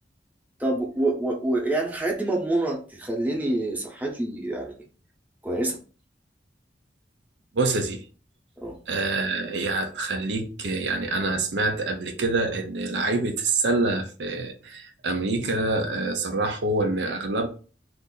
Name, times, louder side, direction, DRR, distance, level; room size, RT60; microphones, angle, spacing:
voice 1, 0.6-4.7 5.4-5.8 8.6-8.7, right 2 dB, 10° right, 0.8 m, -26 dB
voice 2, 7.5-8.0 8.9-17.5, right 2 dB, 80° right, 0.6 m, -26 dB
2.6 x 2.5 x 3.8 m
head